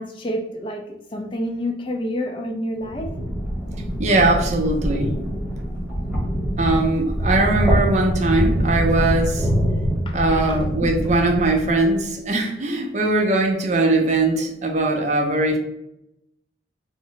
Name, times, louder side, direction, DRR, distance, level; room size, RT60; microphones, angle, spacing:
voice 1, 0.0-3.1 10.1-10.7, equal, 30° left, 3 dB, 0.3 m, -29 dB
sound 1, 2.8-12.0, equal, 10° right, 1.1 m, -24 dB
voice 2, 4.0-5.1 6.6-9.5 10.1-15.6, right 2 dB, 40° right, 2 dB, 0.5 m, -20 dB
3.1 x 2.0 x 3.8 m, 0.84 s
head